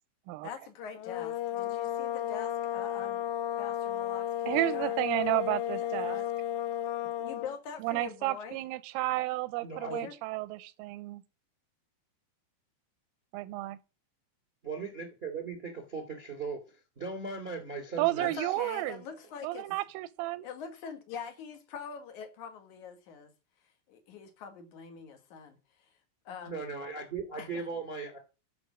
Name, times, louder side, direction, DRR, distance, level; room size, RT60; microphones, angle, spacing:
voice 1, 0.4-3.3 3.6-5.0 6.0-6.3 7.2-8.6 9.9-10.1 18.2-19.7 20.4-23.3 23.9-25.6 26.3-26.6 27.4-27.6, left 6 dB, 65° left, 2.0 m, -43 dB
sound 1, 0.9-7.6, left 11 dB, 80° left, 2.7 m, -33 dB
voice 2, 4.5-6.2 7.8-11.2 13.3-13.8 18.0-19.0 19.4-20.5, right 18 dB, 85° right, 3.3 m, -32 dB
voice 3, 9.6-10.0 14.6-18.5 26.5-28.2, right 4 dB, 20° right, 1.5 m, -38 dB
12.5 x 6.6 x 6.2 m
omnidirectional pair, 5.7 m